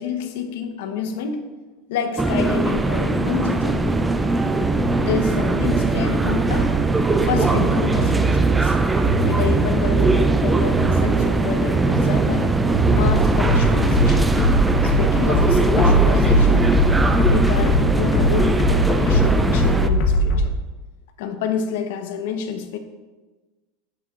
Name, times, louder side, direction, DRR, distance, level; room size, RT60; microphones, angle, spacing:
voice 1, 0.0-1.4 1.9-4.0 5.0-6.7 7.2-8.8 9.2-12.5 12.9-14.3 14.8-16.7 17.3-20.5 21.2-22.8, left 7 dB, 75° left, 6 dB, 1.1 m, -28 dB
sound 1, 2.2-19.9, right 2 dB, 10° right, 0.4 m, -21 dB
sound 2, 2.7-13.4, right 6 dB, 40° right, 0.8 m, -24 dB
sound 3, 13.0-20.5, equal, 55° left, 1.1 m, -19 dB
10.5 x 9.4 x 2.6 m, 1.2 s
supercardioid pair, 155°, 0 cm